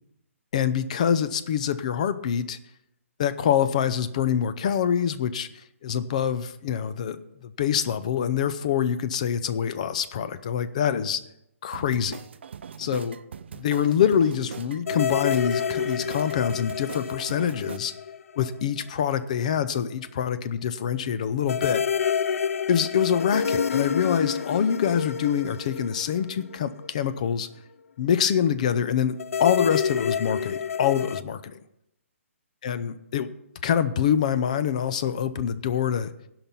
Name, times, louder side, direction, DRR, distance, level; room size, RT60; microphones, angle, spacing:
voice 1, 0.5-2.6 3.2-5.5 5.8-11.2 11.6-12.2 12.8-13.2 13.5-17.9 18.4-21.8 22.7-27.5 28.0-31.6 32.6-33.3 33.6-36.1, left 8 dB, 30° left, 14 dB, 0.5 m, -25 dB
sound 1, 11.7-17.8, right 7 dB, 50° right, 0.4 m, -41 dB
sound 2, 14.9-18.6 18.9-19.0 21.5-26.9 29.2-31.2, left 7 dB, 80° left, 0.4 m, -28 dB
16.0 x 5.9 x 5.4 m, 0.83 s
hypercardioid pair, 170°, 8 cm